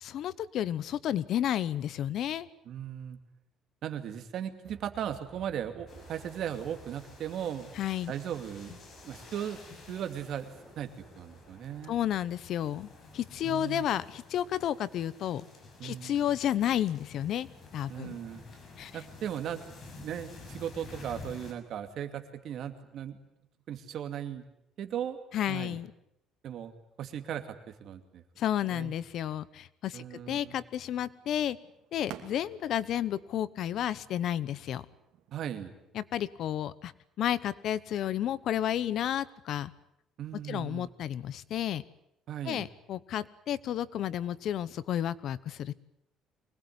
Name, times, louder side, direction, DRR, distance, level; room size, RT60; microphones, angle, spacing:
voice 1, 0.0-2.5 7.8-8.1 11.9-15.4 15.8-17.5 17.7-18.1 18.8-18.9 25.3-25.9 28.4-31.6 31.9-34.8 35.9-36.9 37.2-39.7 40.5-41.8 42.4-45.7, left 11 dB, 55° left, 18 dB, 0.9 m, -31 dB
voice 2, 2.7-3.2 3.8-7.7 8.1-8.8 9.0-9.6 9.9-12.0 13.4-13.9 15.8-16.3 17.9-18.4 18.9-19.6 19.9-23.2 23.7-24.5 24.8-25.2 25.5-25.8 26.4-26.7 27.0-28.2 28.7-28.9 29.9-30.5 35.3-35.7 40.2-40.9 42.3-42.7, right 9 dB, 55° right, 8 dB, 2.5 m, -37 dB
sound 1, 4.6-13.4, right 5 dB, 20° right, 4.3 m, -57 dB
sound 2, 5.9-21.5, left 3 dB, 35° left, 5.8 m, -51 dB
sound 3, 30.2-35.9, right 11 dB, 70° right, 2.8 m, -53 dB
24.5 x 20.0 x 9.6 m, 0.81 s
cardioid pair, 140°, 0 cm